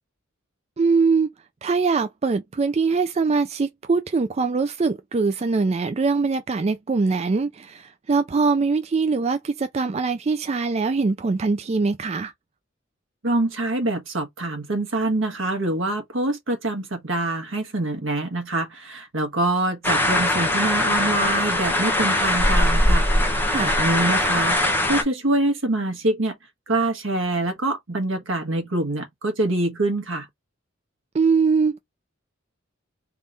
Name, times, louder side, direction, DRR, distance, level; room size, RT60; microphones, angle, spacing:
voice 1, 0.8-1.3 1.6-12.3 23.5-23.8 31.1-31.8, right 4 dB, 30° right, 0.4 m, -22 dB
voice 2, 13.2-24.6 24.9-26.3 26.7-30.3, right 2 dB, 70° right, 1.5 m, -25 dB
sound 1, 19.8-25.0, left 1 dB, 10° left, 1.1 m, -21 dB
3.7 x 3.1 x 4.0 m
head